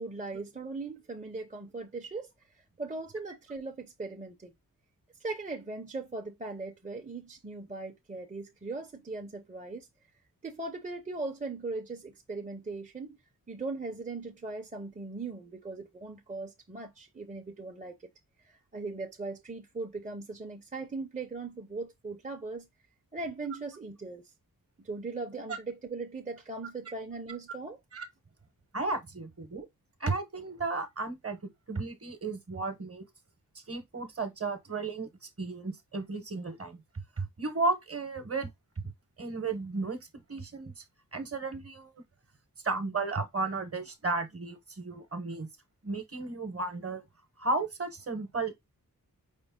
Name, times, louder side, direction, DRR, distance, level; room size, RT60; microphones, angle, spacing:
voice 1, 0.0-2.3 2.8-4.5 5.2-9.9 10.4-13.2 13.5-18.0 18.5-22.7 23.1-24.2 24.8-27.8, right 3 dB, 20° right, 0.6 m, -39 dB
voice 2, 28.7-29.7 30.0-33.1 33.5-35.1 35.4-36.8 37.2-38.5 39.2-40.0 40.3-40.8 41.1-41.9 42.6-45.5 45.8-47.0 47.4-48.5, right 3 dB, 40° right, 0.9 m, -34 dB
5.2 x 2.0 x 3.5 m
wide cardioid pair, 125°, 36 cm